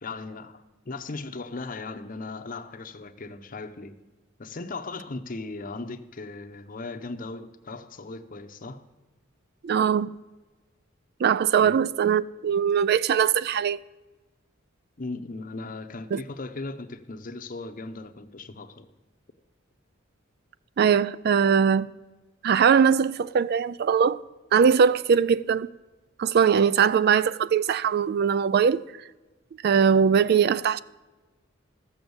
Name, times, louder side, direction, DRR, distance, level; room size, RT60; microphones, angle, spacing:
voice 1, 0.0-3.9 4.4-8.8 11.6-11.8 15.0-18.9, left 3 dB, 40° left, 0.8 m, -37 dB
voice 2, 9.6-10.1 11.2-13.8 16.1-16.2 20.8-21.9 22.4-24.2 24.5-25.7 26.2-28.8 29.6-30.8, right 7 dB, 50° right, 0.3 m, -21 dB
13.5 x 7.0 x 7.9 m
head